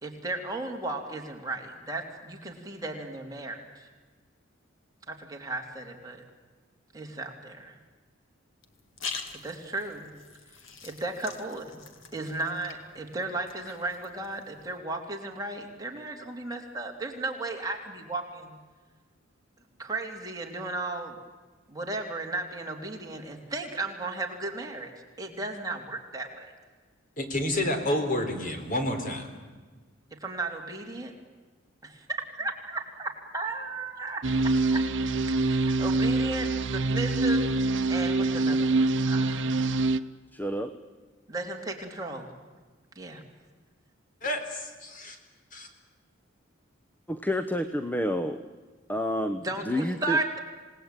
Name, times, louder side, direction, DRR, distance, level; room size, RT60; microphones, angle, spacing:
voice 1, 0.0-3.9 5.1-6.2 6.9-7.8 9.3-10.1 10.8-11.8 12.1-18.6 19.8-21.1 21.7-24.9 25.2-26.5 30.1-31.1 31.8-32.0 32.4-34.2 34.7-34.8 35.4-37.5 37.9-40.0 41.3-42.3 42.9-43.2 49.4-50.4, right 2 dB, 20° right, 1 dB, 3.1 m, -35 dB
sound 1, 8.6-14.8, left 5 dB, 80° left, 2.3 m, -44 dB
voice 2, 27.2-29.3 44.2-45.2 45.5-45.7, left 1 dB, 45° left, 6 dB, 3.9 m, -29 dB
sound 2, 34.2-40.0, right 2 dB, 65° right, 0.8 m, -25 dB
voice 3, 40.3-40.7 47.1-48.4 48.9-50.2, left 1 dB, 10° left, 9 dB, 1.0 m, -29 dB
27.5 x 19.0 x 9.1 m, 1.4 s
head